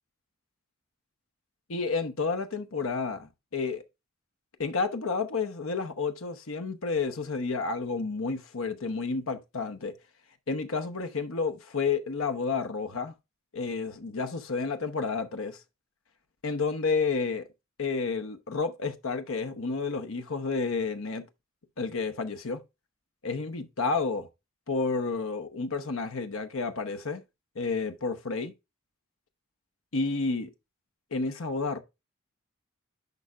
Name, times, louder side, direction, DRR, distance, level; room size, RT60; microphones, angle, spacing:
voice 1, 1.7-3.8 4.6-9.9 10.5-13.1 13.5-15.6 16.4-17.5 17.8-21.3 21.8-22.6 23.2-24.3 24.7-27.2 27.6-28.5 29.9-30.5 31.1-31.8, left 4 dB, 70° left, 0.9 m, -30 dB
11.0 x 4.9 x 2.4 m
head